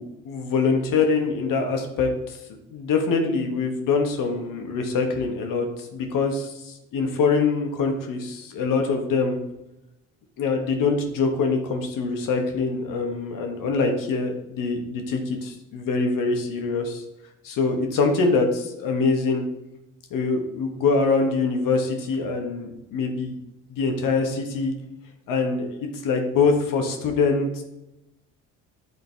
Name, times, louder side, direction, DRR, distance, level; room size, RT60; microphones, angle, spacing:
voice 1, 0.0-2.4 2.7-9.4 10.4-17.0 17.4-19.5 20.1-23.4 23.7-24.7 25.3-27.6, left 4 dB, 60° left, 4 dB, 1.3 m, -24 dB
9.5 x 3.9 x 3.4 m, 0.93 s
hypercardioid pair, 55°, 37 cm